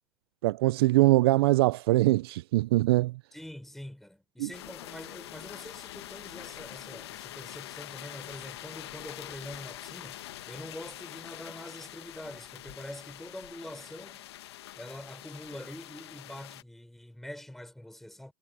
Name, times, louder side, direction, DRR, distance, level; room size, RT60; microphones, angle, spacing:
voice 1, 0.4-3.1 4.4-4.5, right 18 dB, 70° right, 0.4 m, -23 dB
voice 2, 3.3-14.3 14.7-18.3, left 1 dB, ahead, 6.2 m, -45 dB
sound 1, 4.5-16.6, left 14 dB, 85° left, 1.4 m, -45 dB
supercardioid pair, 155°, 13 cm